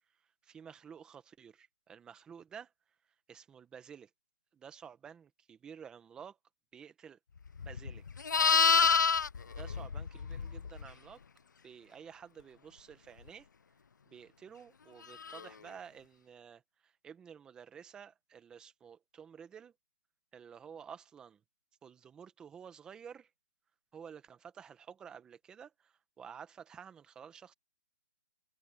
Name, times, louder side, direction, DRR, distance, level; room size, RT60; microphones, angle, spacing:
voice 1, 0.4-2.7 3.3-4.1 4.5-6.3 6.7-7.2 7.6-8.0 9.4-11.2 11.6-13.5 14.1-19.7 20.3-21.4 21.8-23.3 23.9-27.5, right 7 dB, 10° right, 1.6 m, -51 dB
Livestock farm animals working animals, 7.6-10.9 15.2-15.4, left 5 dB, 80° left, 0.7 m, -28 dB
hypercardioid pair, 165°, 10 cm